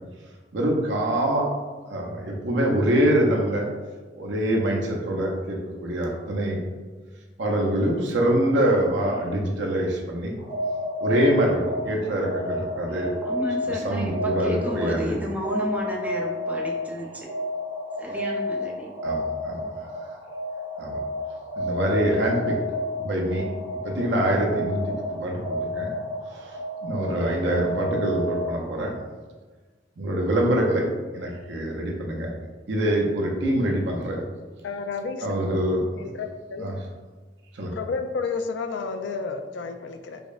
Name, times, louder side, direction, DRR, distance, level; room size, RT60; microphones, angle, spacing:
voice 1, 0.5-1.5 1.9-3.7 4.2-6.6 7.4-10.4 11.0-13.1 13.8-15.1 19.0-19.6 20.8-21.0 21.6-22.6 23.0-23.5 23.8-24.9 25.2-25.4 25.7-25.9 26.8-28.9 30.0-32.3 32.7-34.2 35.2-36.1 36.6-36.7 37.5-37.7, right 1 dB, 70° right, -1 dB, 0.6 m, -24 dB
sound 1, 10.4-28.9, left 1 dB, 55° right, 1.3 m, -31 dB
voice 2, 13.2-17.3 18.0-18.9, equal, 10° right, -3 dB, 0.5 m, -32 dB
voice 3, 34.6-35.4 36.0-36.7 37.7-40.2, left 4 dB, 70° left, 7 dB, 0.3 m, -31 dB
5.1 x 2.1 x 2.4 m, 1.3 s
head